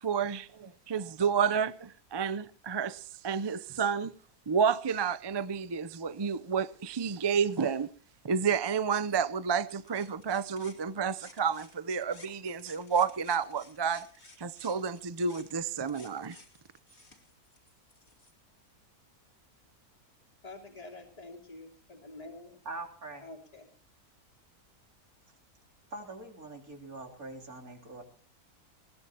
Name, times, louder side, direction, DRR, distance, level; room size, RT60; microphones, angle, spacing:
voice 1, 0.0-4.1 4.5-7.9 8.2-14.1 14.4-16.4, right 6 dB, 40° right, 0.3 m, -30 dB
sound 1, 9.7-11.8 12.0-18.3, left 2 dB, 45° left, 2.8 m, -56 dB
voice 2, 20.4-22.6 23.2-23.7, left 2 dB, 25° left, 2.9 m, -47 dB
voice 3, 22.6-23.3 25.9-28.0, right 2 dB, 65° right, 3.8 m, -43 dB
20.5 x 19.5 x 2.9 m
omnidirectional pair, 1.6 m